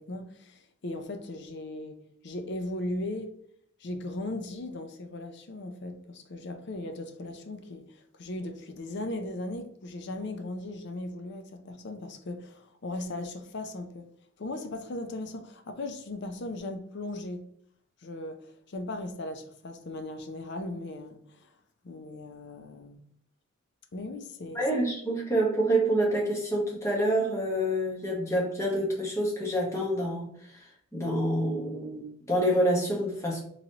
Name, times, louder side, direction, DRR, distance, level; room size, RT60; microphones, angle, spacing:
voice 1, 0.0-3.4 3.8-14.1 14.4-17.5 18.0-21.5 21.8-23.0 23.9-24.6, left 2 dB, 55° left, 0.5 m, -38 dB
voice 2, 24.5-33.4, right 1 dB, 15° left, 1.0 m, -27 dB
3.9 x 3.1 x 2.8 m
head